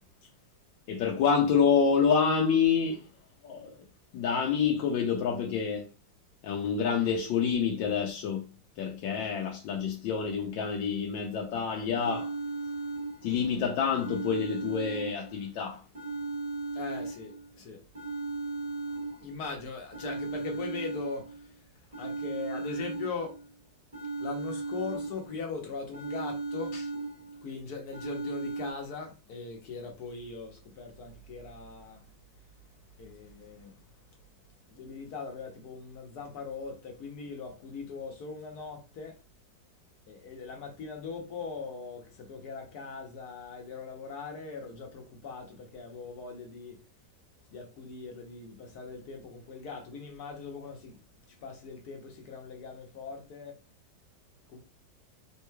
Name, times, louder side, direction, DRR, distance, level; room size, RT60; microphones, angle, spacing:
voice 1, 0.9-3.0 3.4-3.8 4.1-5.9 6.4-8.5 8.8-12.3 13.2-15.8 26.7-26.8, left 6 dB, 85° left, 1.3 m, -27 dB
sound 1, 11.5-11.6 11.9-13.5 13.9-15.5 15.9-17.5 17.9-19.5 19.9-21.5 21.9-23.5 23.9-25.5 25.9-27.5 27.9-28.7, right 3 dB, 35° right, 0.6 m, -36 dB
voice 2, 16.7-17.8 19.2-21.3 22.0-23.3 24.2-26.7 27.4-32.0 33.0-33.7 34.7-39.1 40.1-46.7 47.5-51.0 51.4-53.6 54.5-54.6, left 4 dB, 60° left, 1.3 m, -40 dB
3.6 x 3.0 x 2.2 m
omnidirectional pair, 2.0 m